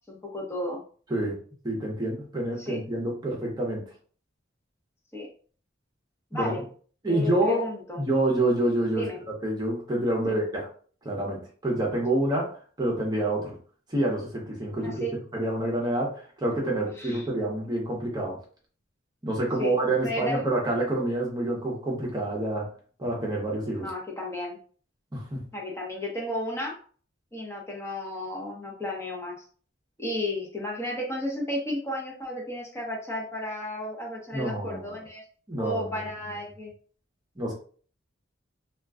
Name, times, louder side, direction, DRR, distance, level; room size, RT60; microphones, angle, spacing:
voice 1, 0.1-0.8 2.6-2.8 5.1-5.3 6.3-6.6 7.1-8.0 8.9-9.2 10.2-10.4 14.8-15.1 16.5-17.3 19.6-19.8 20.0-20.4 23.7-24.6 25.5-26.7 27.3-29.4 30.0-35.2 35.6-36.7, left 1 dB, 15° left, -3 dB, 0.8 m, -33 dB
voice 2, 1.6-3.9 6.3-6.5 7.0-7.7 8.0-9.1 9.4-10.7 11.0-13.6 13.9-15.1 15.3-18.4 19.2-22.7 23.0-23.9 25.1-25.4 34.3-34.9 35.5-36.1 37.4-37.5, right 1 dB, 20° right, -2 dB, 0.8 m, -27 dB
2.4 x 2.2 x 3.5 m, 0.43 s
head